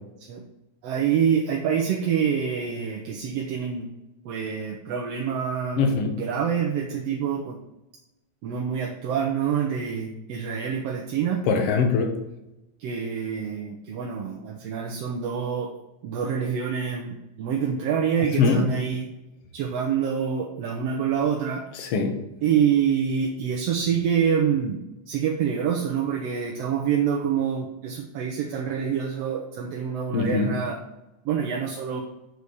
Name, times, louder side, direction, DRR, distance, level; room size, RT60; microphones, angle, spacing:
voice 1, 0.8-3.9 4.3-7.6 8.4-11.4 12.8-15.7 16.0-19.1 19.5-21.6 22.4-24.8 25.1-30.8 31.3-32.0, right 7 dB, 70° right, 1 dB, 1.7 m, -26 dB
voice 2, 5.8-6.1 11.5-12.1 18.4-18.6 21.8-22.1 30.1-30.5, left 4 dB, 60° left, 3 dB, 2.2 m, -21 dB
8.2 x 4.9 x 7.0 m, 0.95 s
omnidirectional pair, 3.4 m